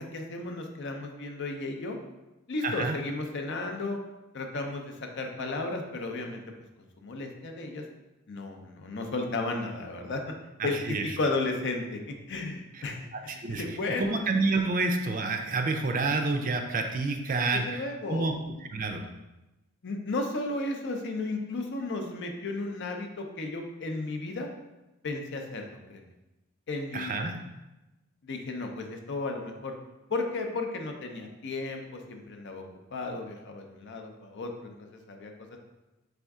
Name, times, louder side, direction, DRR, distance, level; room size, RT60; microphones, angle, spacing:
voice 1, 0.0-2.0 2.5-4.0 4.3-6.4 7.0-7.8 8.3-10.2 10.6-14.2 17.5-18.3 19.8-24.5 25.0-26.0 26.7-27.3 28.2-29.8 30.1-32.6 32.9-35.3, left 2 dB, 55° left, 4 dB, 0.6 m, -34 dB
voice 2, 2.6-3.0 10.6-11.0 13.4-13.6 14.0-18.3 18.7-19.0 26.9-27.3, right 3 dB, 40° right, 4 dB, 0.4 m, -28 dB
4.2 x 3.5 x 3.6 m, 1.0 s
head